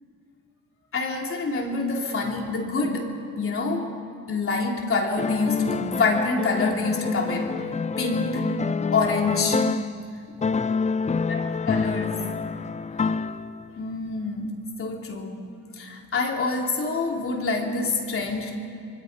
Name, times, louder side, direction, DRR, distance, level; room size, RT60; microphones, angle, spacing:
voice 1, 0.9-3.9 4.3-7.6 8.0-8.5 8.9-9.6 11.3-12.3 13.8-15.5 15.8-18.6, left 3 dB, 45° left, 1 dB, 3.5 m, -26 dB
sound 1, 5.2-10.0 10.4-13.8, left 5 dB, 25° left, 0.5 m, -27 dB
26.0 x 23.0 x 5.3 m, 2.4 s
cardioid pair, 90°, 30 cm